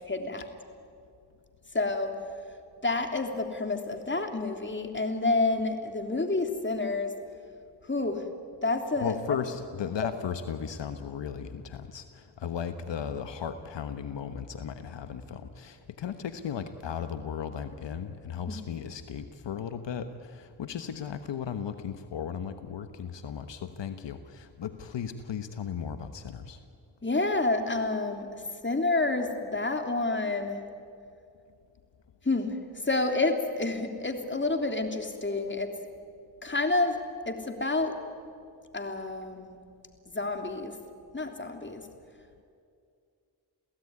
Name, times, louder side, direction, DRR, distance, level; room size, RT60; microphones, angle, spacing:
voice 1, 0.1-0.4 1.7-2.1 2.8-7.1 7.8-8.2 8.6-9.4 18.5-18.6 27.0-30.6 32.2-32.6 32.8-35.7 36.4-37.0 37.3-37.9 38.7-39.6 40.1-40.7 41.1-41.8, left 3 dB, 25° left, 5 dB, 3.3 m, -29 dB
voice 2, 9.0-26.6, left 7 dB, 80° left, 10 dB, 1.2 m, -36 dB
28.0 x 16.5 x 9.7 m, 2.4 s
cardioid pair, 55°, 43 cm